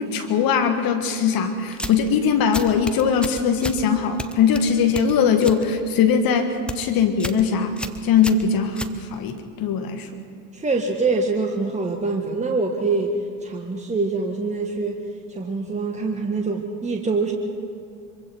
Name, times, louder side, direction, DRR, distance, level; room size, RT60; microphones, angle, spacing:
voice 1, 0.0-10.1, left 6 dB, 45° left, 6 dB, 1.7 m, -21 dB
sound 1, 1.7-2.1 2.5-3.8 4.2-5.6 6.0-6.3 6.6-6.8 7.2-7.4 7.8-9.4, left 1 dB, ahead, 1.1 m, -32 dB
voice 2, 10.5-15.0 15.3-17.3, right 3 dB, 15° right, 2 dB, 1.7 m, -24 dB
25.0 x 23.5 x 4.6 m, 2.3 s
figure-of-eight pair, 70°, 49 cm